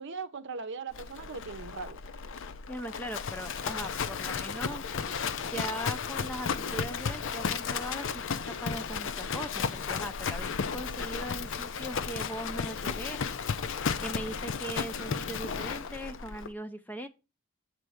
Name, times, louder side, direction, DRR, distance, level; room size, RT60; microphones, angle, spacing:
voice 1, 0.0-2.0, right 4 dB, 55° right, 0.7 m, -39 dB
Livestock farm animals working animals, 0.9-16.5, left 6 dB, 60° left, 0.5 m, -34 dB
voice 2, 2.7-4.8 5.5-13.3 13.7-17.1, equal, 10° left, 0.5 m, -40 dB
7.6 x 3.3 x 6.3 m
head